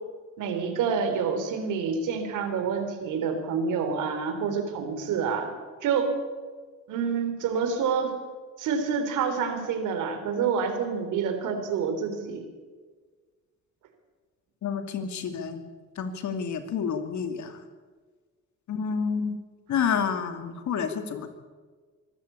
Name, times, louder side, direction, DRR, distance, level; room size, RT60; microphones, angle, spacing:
voice 1, 0.4-5.5 5.8-6.1 6.9-8.1 8.6-12.4, right 6 dB, 90° right, 7 dB, 3.6 m, -27 dB
voice 2, 14.6-15.6 16.0-17.6 18.7-19.4 19.7-21.3, left 6 dB, 70° left, 7 dB, 2.5 m, -29 dB
24.0 x 13.0 x 8.5 m, 1.5 s
cardioid pair, 90°, 30 cm